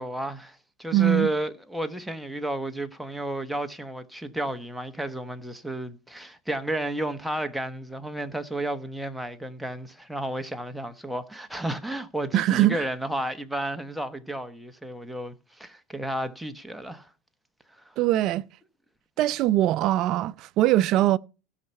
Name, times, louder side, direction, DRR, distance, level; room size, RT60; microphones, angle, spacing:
voice 1, 0.0-17.1 17.7-17.9, right 1 dB, ahead, 1.0 m, -32 dB
voice 2, 0.9-1.3 12.3-12.8 18.0-18.4 19.2-21.2, right 14 dB, 45° right, 0.5 m, -22 dB
16.0 x 5.8 x 5.3 m
supercardioid pair, 140°, 0 cm